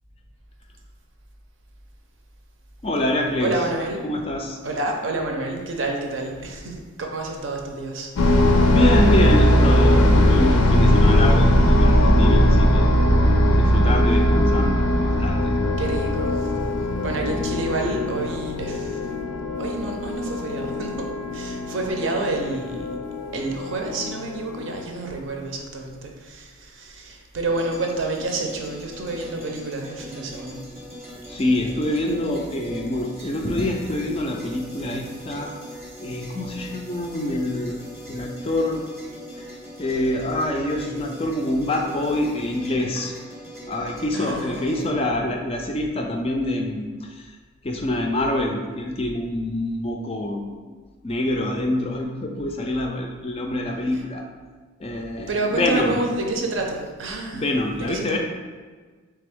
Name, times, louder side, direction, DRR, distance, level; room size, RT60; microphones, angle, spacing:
voice 1, 2.8-3.5 4.0-4.6 8.7-12.9 13.6-15.5 31.3-35.6 36.0-37.8 38.1-38.8 39.8-43.1 43.7-47.3 47.6-50.6 51.0-54.2 54.8-56.0 57.3-58.2, left 1 dB, 25° left, 2 dB, 0.3 m, -25 dB
voice 2, 3.4-4.0 4.6-8.4 15.8-16.5 17.0-19.1 19.6-23.0 23.3-30.6 44.1-44.9 55.3-58.2, right 2 dB, 65° right, 2 dB, 0.6 m, -29 dB
sound 1, 8.2-24.8, equal, 90° left, 0.5 m, -19 dB
sound 2, 27.4-44.8, equal, 15° right, 0.6 m, -40 dB
3.3 x 3.3 x 3.5 m, 1.4 s
head